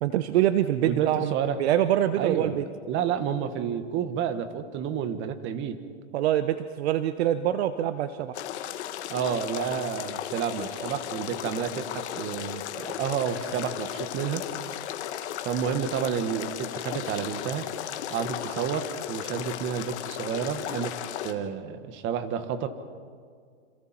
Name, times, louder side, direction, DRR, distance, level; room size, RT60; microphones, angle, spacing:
voice 1, 0.0-1.3 1.6-2.6 6.1-8.3, right 12 dB, 60° right, 11 dB, 1.0 m, -24 dB
voice 2, 0.9-1.6 2.2-2.6 2.9-5.8 9.1-14.4 15.5-17.7 18.1-21.0 21.2-22.7, right 8 dB, 30° right, 9 dB, 1.7 m, -30 dB
sound 1, 8.3-21.3, left 11 dB, 65° left, 1.6 m, -35 dB
27.5 x 27.5 x 4.5 m, 2.1 s
hypercardioid pair, 130°, 37 cm